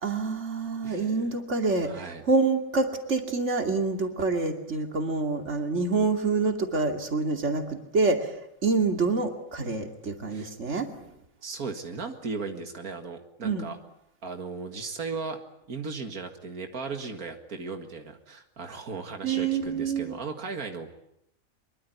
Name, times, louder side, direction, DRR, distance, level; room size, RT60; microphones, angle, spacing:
voice 1, 0.0-8.4 8.6-10.9 13.4-13.7 19.2-20.2, right 3 dB, 55° right, 4 dB, 2.9 m, -27 dB
voice 2, 0.8-1.3 1.8-2.2 10.3-10.5 11.4-13.8 14.2-15.4 15.7-20.9, right 4 dB, 90° right, 5 dB, 2.4 m, -36 dB
24.5 x 23.0 x 9.5 m, 0.79 s
omnidirectional pair, 1.5 m